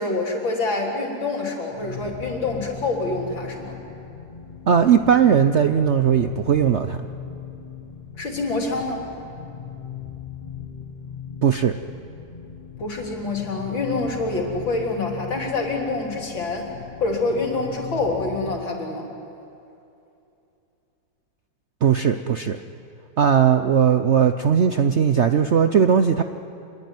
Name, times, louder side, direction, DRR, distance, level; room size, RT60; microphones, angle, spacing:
voice 1, 0.0-3.8 8.2-9.1 12.8-16.7 17.0-19.1, left 3 dB, 85° left, 0 dB, 4.3 m, -26 dB
sound 1, 1.7-18.7, left 7 dB, 35° left, 0.7 m, -38 dB
voice 2, 4.7-7.1 11.4-11.8 21.8-22.6 23.2-26.2, right 8 dB, 65° right, 9 dB, 0.6 m, -18 dB
26.5 x 21.5 x 9.4 m, 2.7 s
omnidirectional pair, 2.0 m